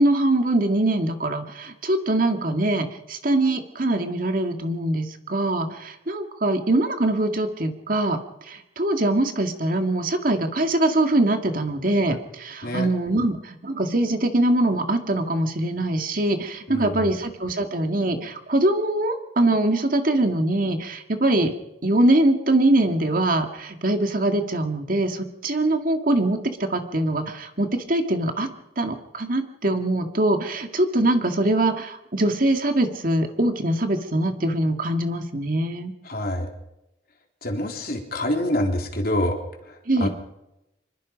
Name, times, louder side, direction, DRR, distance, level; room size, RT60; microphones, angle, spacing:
voice 1, 0.0-21.5 21.8-28.5 28.8-35.9 39.9-40.1, right 1 dB, 50° right, 6 dB, 2.1 m, -23 dB
voice 2, 16.7-17.1 36.1-36.5 37.4-39.4 39.7-39.8 40.0-40.1, left 1 dB, 55° left, 2 dB, 3.7 m, -26 dB
26.0 x 22.0 x 5.3 m, 0.90 s
head